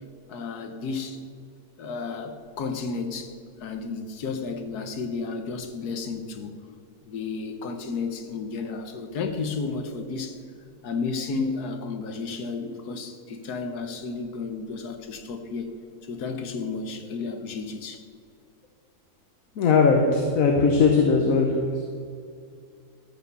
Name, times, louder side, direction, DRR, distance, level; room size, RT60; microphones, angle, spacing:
voice 1, 0.3-1.2 1.8-6.5 7.0-10.4 10.8-15.7 16.0-18.0, left 4 dB, 80° left, 1.6 m, -32 dB
voice 2, 19.6-21.9, left 4 dB, 60° left, 1.4 m, -20 dB
14.0 x 6.3 x 6.9 m
omnidirectional pair, 1.7 m